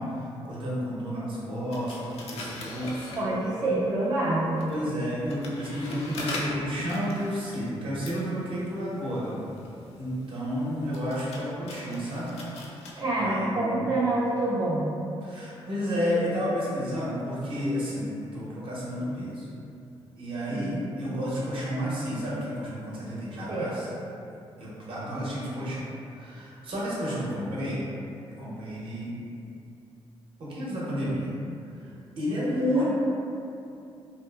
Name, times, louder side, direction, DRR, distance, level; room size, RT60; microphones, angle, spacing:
voice 1, 0.0-3.1 4.7-9.4 10.0-12.3 13.2-13.9 15.2-19.5 20.2-23.9 24.6-27.8 28.2-29.1 30.4-31.3 31.8-32.9, equal, 55° right, -7 dB, 0.8 m, -31 dB
sound 1, 1.7-3.8 4.4-12.9, left 2 dB, 75° left, 0.4 m, -41 dB
voice 2, 3.2-4.7 13.0-15.0 20.5-20.8 23.5-23.7 32.7-32.9, right 2 dB, 35° right, -8 dB, 0.4 m, -27 dB
2.6 x 2.5 x 2.3 m, 2.6 s
cardioid pair, 85°, 10 cm